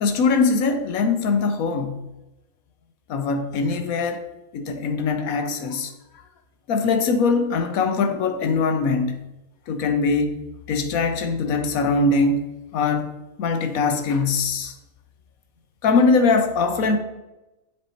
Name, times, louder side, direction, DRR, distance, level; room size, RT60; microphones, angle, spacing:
voice 1, 0.0-2.0 3.1-4.2 4.5-5.9 6.7-9.2 9.7-10.4 10.7-12.4 12.7-13.1 13.4-14.7 15.8-17.0, left 4 dB, 85° left, 1.3 m, -21 dB
7.0 x 6.8 x 4.4 m
omnidirectional pair, 1.4 m